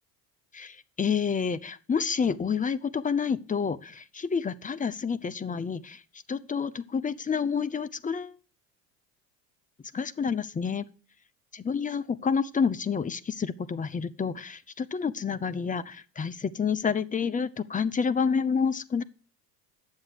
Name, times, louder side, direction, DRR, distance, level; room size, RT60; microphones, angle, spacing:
voice 1, 0.5-6.0 6.3-8.3 9.9-10.9 11.5-19.0, left 6 dB, 20° left, 13 dB, 0.6 m, -29 dB
9.4 x 7.3 x 6.6 m, 0.39 s
hypercardioid pair, 65°, 46 cm